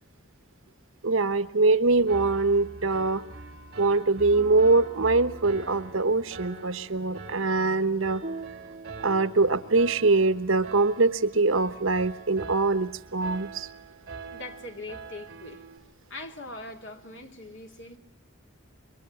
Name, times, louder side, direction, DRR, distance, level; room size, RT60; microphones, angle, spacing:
voice 1, 1.0-3.2 3.8-8.2 9.0-13.7, right 3 dB, 70° right, 1.1 m, -23 dB
Piano, 2.1-15.8, right 3 dB, 50° right, 4.6 m, -44 dB
sound 1, 4.3-10.1, right 3 dB, 30° right, 4.8 m, -45 dB
voice 2, 14.3-15.7 16.1-18.0, left 2 dB, 55° left, 2.4 m, -41 dB
26.0 x 23.0 x 8.6 m
head